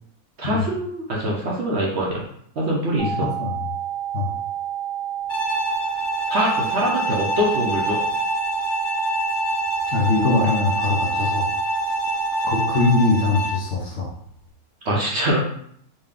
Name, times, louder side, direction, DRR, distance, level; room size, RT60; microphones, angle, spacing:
voice 1, 0.4-2.2 2.6-3.3 6.3-8.0 14.8-15.4, right 1 dB, 55° right, -3 dB, 0.9 m, -23 dB
sound 1, 3.0-13.0, right 11 dB, 80° right, 1.9 m, -29 dB
voice 2, 3.2-3.5 4.1-4.3 9.9-11.5 12.4-14.1, left 3 dB, 60° left, -2 dB, 0.8 m, -22 dB
Bowed string instrument, 5.3-13.7, left 1 dB, 30° left, 1.3 m, -26 dB
4.1 x 2.2 x 3.5 m, 0.66 s
omnidirectional pair, 1.6 m